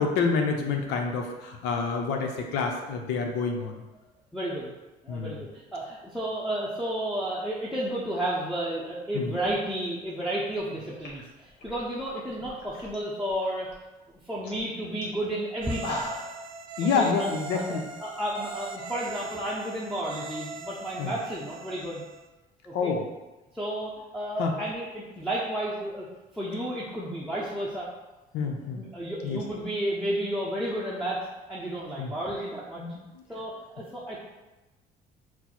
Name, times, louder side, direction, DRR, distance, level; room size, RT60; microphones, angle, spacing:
voice 1, 0.0-3.7 5.1-5.4 9.1-9.3 16.8-17.8 21.0-21.1 22.7-23.0 24.4-24.5 28.3-28.8 29.2-29.4 32.0-32.1 32.8-33.0, left 5 dB, 85° left, 2 dB, 0.6 m, -27 dB
voice 2, 4.3-4.7 5.0-13.7 14.1-16.1 17.0-22.0 22.6-22.9 23.5-26.1 26.3-27.9 28.4-28.5 28.8-31.2 31.5-32.8 33.3-34.2, right 1 dB, ahead, -7 dB, 0.7 m, -32 dB
sound 1, 10.7-10.8 11.0-13.0 13.3-13.7 14.1-14.2 14.4-14.6 15.0-15.1 15.6-16.4, left 1 dB, 70° left, 1.2 m, -38 dB
sound 2, 15.6-22.3, right 4 dB, 60° right, 0.5 m, -41 dB
4.3 x 2.0 x 4.3 m, 1.1 s
cardioid pair, 110°, 17 cm